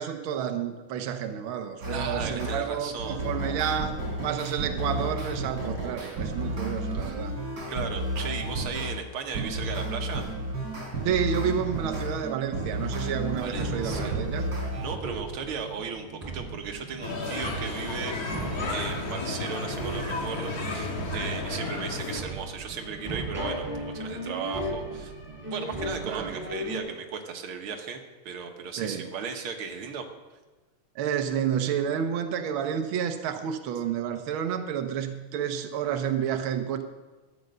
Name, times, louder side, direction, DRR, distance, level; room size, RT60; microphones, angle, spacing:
voice 1, 0.0-7.3 11.0-14.5 26.0-26.4 28.8-29.1 30.9-36.8, right 8 dB, 80° right, 6 dB, 1.1 m, -30 dB
sound 1, 1.8-2.6 3.0-9.0 9.3-15.0, right 1 dB, 35° right, 4.1 m, -32 dB
voice 2, 1.9-3.2 7.0-7.2 7.7-10.2 13.4-14.2 14.7-18.2 18.7-25.1 25.5-30.0, right 6 dB, 55° right, 4 dB, 1.8 m, -36 dB
sound 2, 13.5-26.8, right 1 dB, 5° right, 5.2 m, -37 dB
sound 3, 17.0-22.2, left 3 dB, 40° left, 1.6 m, -33 dB
12.5 x 9.5 x 6.6 m, 1.2 s
omnidirectional pair, 3.4 m